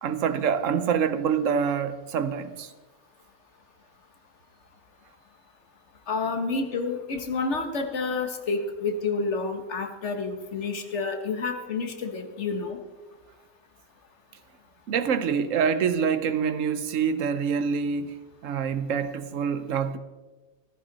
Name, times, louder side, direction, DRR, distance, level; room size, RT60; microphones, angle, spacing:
voice 1, 0.0-2.7 14.9-18.1 18.4-20.0, right 7 dB, 90° right, 1.2 m, -26 dB
voice 2, 6.1-12.8, left 4 dB, 65° left, 1.5 m, -29 dB
14.5 x 14.0 x 4.0 m
omnidirectional pair, 1.3 m